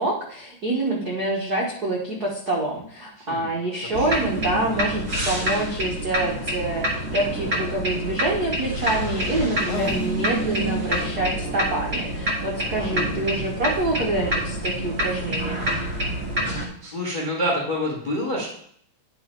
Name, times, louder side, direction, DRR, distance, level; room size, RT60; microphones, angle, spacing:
voice 1, 0.0-15.7, right 2 dB, 80° right, -2 dB, 0.8 m, -26 dB
voice 2, 3.2-3.5 3.8-4.2 12.6-12.9 16.8-18.5, equal, 40° left, -2 dB, 0.7 m, -28 dB
sound 1, 3.9-16.7, right 1 dB, 30° right, 1.7 m, -27 dB
sound 2, 9.7-10.1 10.9-11.2 12.9-13.3, left 5 dB, 80° left, 1.2 m, -33 dB
10.0 x 3.9 x 4.4 m, 0.64 s
omnidirectional pair, 3.5 m